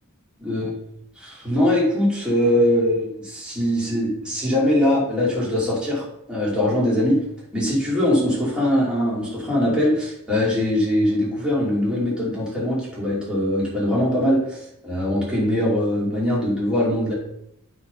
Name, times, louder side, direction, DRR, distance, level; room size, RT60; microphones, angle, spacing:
voice 1, 0.4-0.7 1.2-7.2 7.5-17.1, left 1 dB, 5° right, -7 dB, 2.7 m, -22 dB
8.7 x 3.9 x 5.4 m, 0.76 s
head